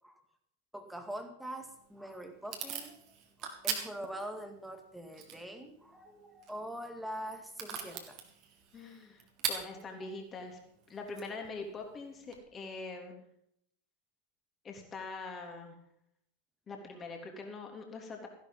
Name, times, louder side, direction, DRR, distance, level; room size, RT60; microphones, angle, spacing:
voice 1, 0.7-3.0 3.4-8.2 9.7-10.2, equal, ahead, 6 dB, 2.1 m, -44 dB
Packing tape duct tape / Tearing, 1.6-12.4, right 7 dB, 40° right, 2.6 m, -44 dB
voice 2, 8.7-10.6 10.9-13.2 14.6-15.8 16.7-18.3, left 3 dB, 20° left, 3 dB, 3.4 m, -43 dB
15.5 x 11.5 x 5.5 m, 0.72 s
figure-of-eight pair, 90°, 0 cm